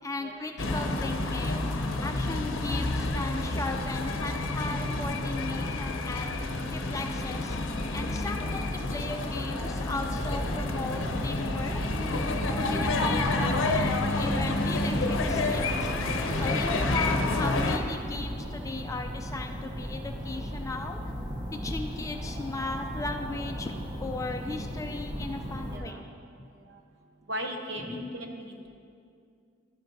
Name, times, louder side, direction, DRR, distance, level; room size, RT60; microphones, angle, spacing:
voice 1, 0.0-1.7 2.0-6.3 6.7-7.6 7.9-11.8 12.6-15.9 16.3-21.0 21.5-23.7 24.0-26.0 26.4-26.5 27.8-28.1, left 3 dB, 15° left, 4 dB, 0.4 m, -36 dB
sound 1, 0.6-17.8, left 2 dB, 65° left, 0.7 m, -29 dB
sound 2, 10.1-25.8, equal, 20° right, 0.8 m, -36 dB
voice 2, 27.3-28.7, equal, 60° right, 3 dB, 0.9 m, -37 dB
12.0 x 10.5 x 2.7 m, 2.4 s
head